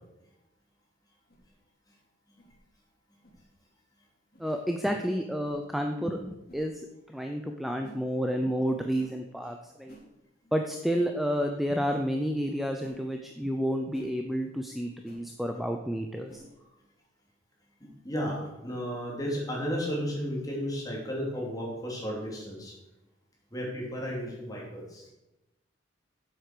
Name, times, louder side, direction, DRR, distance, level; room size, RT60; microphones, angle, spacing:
sound 1, 1.3-1.5 2.4-2.6 3.2-3.4 4.3-4.5 5.4-5.6 6.5-6.6 7.8-8.0 8.9-9.2 9.9-10.1 10.9-11.1 11.9-12.1 12.8-13.0 13.9-14.1 15.0-15.2 16.3-16.5, right 1 dB, 55° left, 2.5 m, -51 dB
voice 1, 4.4-10.0 10.5-16.4, equal, ahead, 4 dB, 0.6 m, -30 dB
voice 2, 17.8-22.7 23.5-25.0, equal, 20° left, -2 dB, 3.1 m, -33 dB
8.0 x 7.8 x 6.7 m, 0.95 s
head